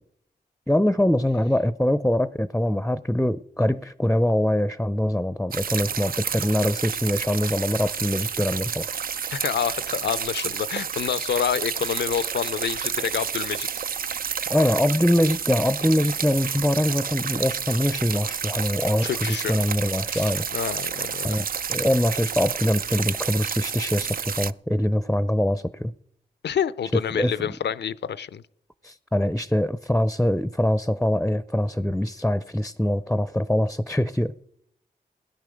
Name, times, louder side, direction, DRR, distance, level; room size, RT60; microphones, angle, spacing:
voice 1, 0.7-8.9 14.5-20.5 21.2-25.9 27.1-27.3 28.8-34.5, left 1 dB, 5° left, 0.6 m, -23 dB
sound 1, 5.5-24.5, right 7 dB, 55° right, 0.4 m, -30 dB
voice 2, 9.3-13.7 19.0-19.5 20.1-21.4 26.4-28.4, left 8 dB, 75° left, 0.6 m, -28 dB
17.0 x 10.5 x 5.1 m
cardioid pair, 45°, 18 cm